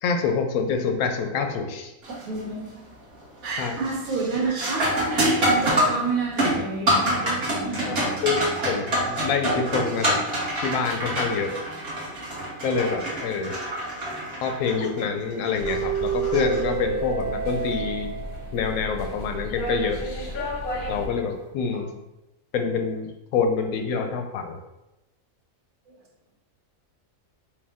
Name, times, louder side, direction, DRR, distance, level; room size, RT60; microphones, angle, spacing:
voice 1, 0.0-1.9 3.6-3.8 7.8-10.2 10.6-11.7 12.6-13.6 14.4-18.2 18.5-20.0 20.9-21.9 22.5-24.6, left 5 dB, 85° left, 5 dB, 1.0 m, -26 dB
sound 1, 2.0-2.4 2.8-3.3 3.6-17.1 19.6-19.7 20.5-20.8, right 1 dB, 45° right, 1.2 m, -27 dB
voice 2, 2.2-2.8 3.4-8.3 8.6-8.7 25.9-26.0, right 4 dB, 75° right, -2 dB, 1.4 m, -30 dB
sound 2, 15.6-21.1, right 4 dB, 50° left, 0.7 m, -29 dB
4.8 x 2.2 x 3.5 m, 0.96 s
omnidirectional pair, 1.5 m